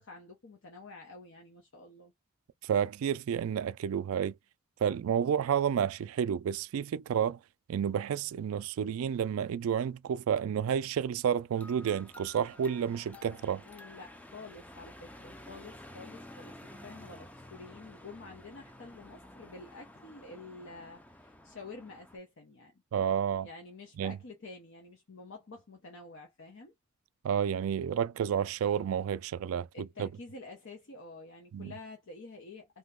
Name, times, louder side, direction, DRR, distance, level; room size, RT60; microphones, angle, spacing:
voice 1, 0.0-2.1 13.6-22.8 23.4-26.7 29.7-32.8, left 3 dB, 60° left, 0.8 m, -49 dB
voice 2, 2.6-4.3 4.8-7.4 7.7-13.6 22.9-23.5 24.0-24.2 27.2-30.1 31.5-31.7, right 8 dB, 70° right, 0.3 m, -30 dB
sound 1, 11.5-22.2, left 1 dB, 5° left, 0.4 m, -51 dB
2.9 x 2.1 x 3.6 m
head